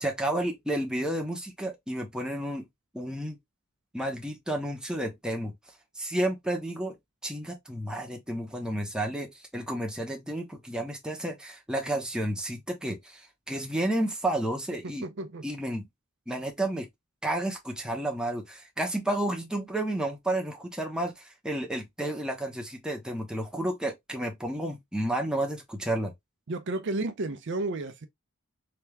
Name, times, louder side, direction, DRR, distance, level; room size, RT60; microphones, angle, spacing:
voice 1, 0.0-2.7 2.9-3.4 3.9-5.5 6.0-7.0 7.2-15.1 15.4-15.9 16.3-16.9 17.2-26.1, right 1 dB, 5° right, 0.9 m, -31 dB
voice 2, 15.0-15.4 26.5-28.1, right 2 dB, 55° right, 0.6 m, -32 dB
3.3 x 2.9 x 3.4 m
head